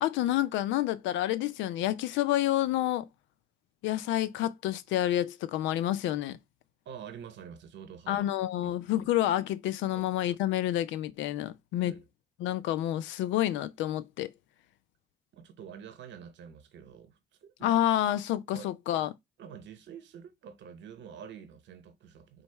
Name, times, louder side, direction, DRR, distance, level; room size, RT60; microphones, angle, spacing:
voice 1, 0.0-3.1 3.8-6.4 8.1-11.9 12.4-14.3 17.6-19.1, left 13 dB, 80° left, 0.4 m, -29 dB
voice 2, 6.8-8.3 8.6-9.1 9.9-10.3 11.8-12.0 15.3-17.8 18.5-18.7 19.4-22.4, right 7 dB, 75° right, 0.9 m, -47 dB
3.9 x 2.3 x 4.4 m
hypercardioid pair, 40°, 19 cm